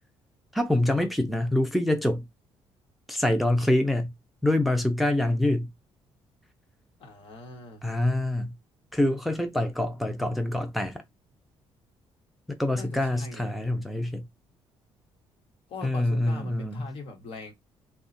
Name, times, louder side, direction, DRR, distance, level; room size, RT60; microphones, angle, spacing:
voice 1, 0.5-2.2 3.1-4.1 4.4-5.7 7.8-8.5 8.9-11.0 12.6-14.3 15.8-16.9, left 1 dB, ahead, 0.5 m, -25 dB
voice 2, 7.0-7.8 12.7-13.5 15.7-17.5, left 3 dB, 65° left, 1.2 m, -41 dB
2.9 x 2.3 x 4.1 m
cardioid pair, 110°, 10 cm